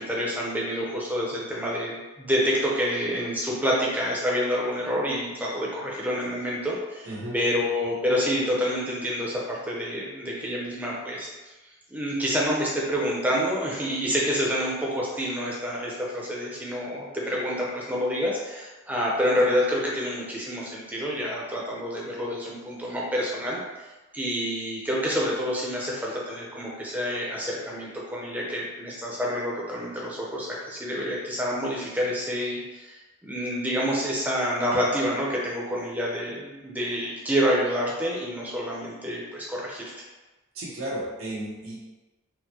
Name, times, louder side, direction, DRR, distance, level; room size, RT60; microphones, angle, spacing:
voice 1, 0.0-11.5 11.9-23.6 24.1-39.9, equal, 10° right, -4 dB, 0.6 m, -28 dB
voice 2, 7.0-7.4 40.5-41.8, right 1 dB, 85° right, -6 dB, 0.9 m, -33 dB
4.5 x 2.1 x 2.8 m, 1.1 s
head